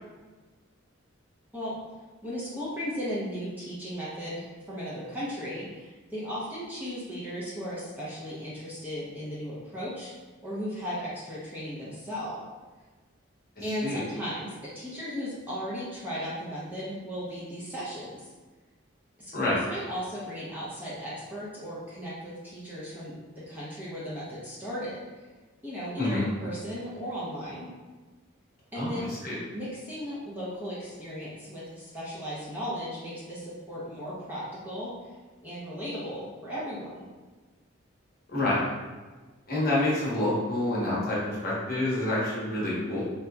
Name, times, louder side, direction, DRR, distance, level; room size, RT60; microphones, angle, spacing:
voice 1, 2.2-10.1 10.4-12.4 13.6-18.3 19.2-23.2 23.5-25.2 25.6-27.7 28.7-29.1 29.5-35.1 35.4-37.0, equal, 10° right, -9 dB, 0.6 m, -36 dB
voice 2, 28.7-29.3 38.3-38.6 39.5-43.0, left 1 dB, 45° left, -7 dB, 1.0 m, -27 dB
3.5 x 2.8 x 2.2 m, 1.3 s
head